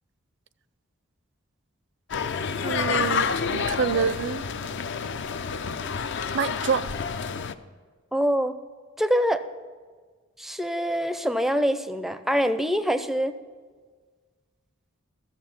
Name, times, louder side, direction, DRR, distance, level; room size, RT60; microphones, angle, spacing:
sound 1, 2.1-7.5, left 6 dB, 60° left, 0.5 m, -29 dB
voice 1, 2.6-4.4 6.3-6.8, right 6 dB, 60° right, 16 dB, 0.5 m, -27 dB
voice 2, 8.1-8.6 9.0-9.5 10.4-13.3, equal, ahead, 11 dB, 0.4 m, -24 dB
14.0 x 7.4 x 5.9 m, 1.5 s
head